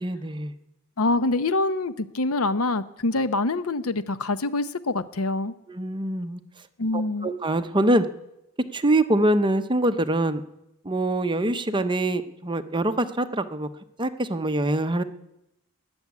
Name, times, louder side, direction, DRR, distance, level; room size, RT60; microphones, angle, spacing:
voice 1, 0.0-0.5 5.7-6.4 6.9-8.0 8.7-10.4 10.8-13.7 14.0-15.0, right 1 dB, 20° right, 9 dB, 0.8 m, -24 dB
voice 2, 1.0-5.5 6.8-7.3, left 2 dB, 80° left, 13 dB, 0.8 m, -25 dB
20.5 x 7.1 x 9.5 m, 0.86 s
head